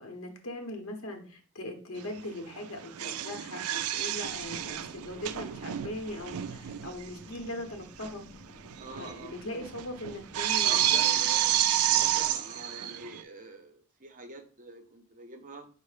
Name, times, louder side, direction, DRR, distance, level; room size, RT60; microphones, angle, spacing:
voice 1, 0.0-8.2 9.0-11.1, left 1 dB, 65° left, 3 dB, 0.8 m, -40 dB
sound 1, 2.0-2.2 2.5-7.1 7.3-7.4 8.0-8.1 8.4-13.2, right 12 dB, 80° right, 0.3 m, -30 dB
sound 2, 4.2-12.4, left 2 dB, 25° left, 0.4 m, -52 dB
voice 2, 8.8-9.4 10.6-15.7, right 2 dB, 35° right, 6 dB, 0.6 m, -45 dB
5.4 x 2.0 x 4.8 m, 0.40 s
head